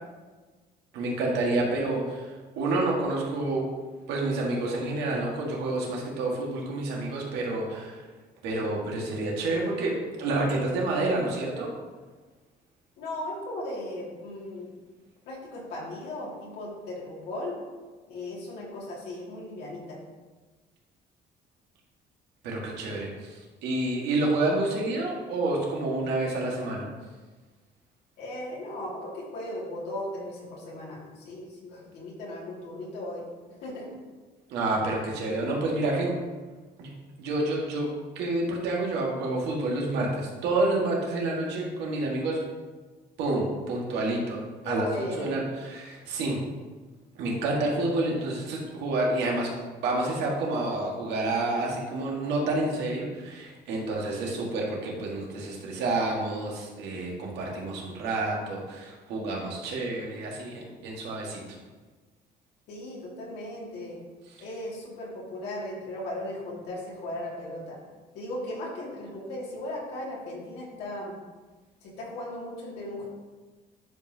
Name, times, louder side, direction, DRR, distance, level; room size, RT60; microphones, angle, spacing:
voice 1, 0.9-2.3 2.6-3.7 4.1-8.0 8.4-11.7 22.4-26.9 34.5-36.2 36.8-36.9 37.2-42.4 43.2-44.4 44.6-44.9 45.2-46.4 47.2-49.5 49.8-61.4, right 2 dB, 85° right, -2 dB, 1.8 m, -29 dB
voice 2, 13.0-14.7 15.3-17.6 18.1-20.0 28.2-33.3 33.6-33.9 35.3-35.6 44.6-45.3 62.7-64.0 64.4-67.8 68.1-71.1 71.8-73.1, left 1 dB, 80° left, -4 dB, 2.4 m, -37 dB
10.5 x 5.3 x 2.9 m, 1.3 s
cardioid pair, 110°, 17 cm